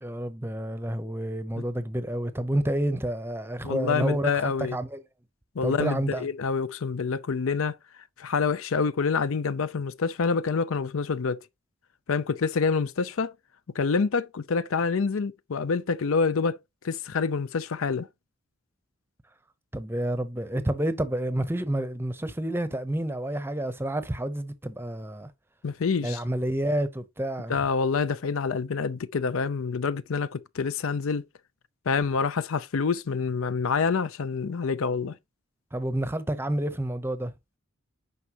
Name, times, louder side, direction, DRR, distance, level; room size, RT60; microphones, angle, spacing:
voice 1, 0.0-5.0 5.6-6.3 19.7-25.3 26.0-27.5 35.7-37.3, right 1 dB, 10° right, 0.7 m, -29 dB
voice 2, 3.6-4.8 5.6-7.8 8.2-11.4 12.1-13.3 13.7-16.6 16.8-18.1 25.6-26.2 27.5-31.2 31.9-35.2, left 5 dB, 70° left, 0.5 m, -27 dB
9.7 x 5.4 x 2.9 m
head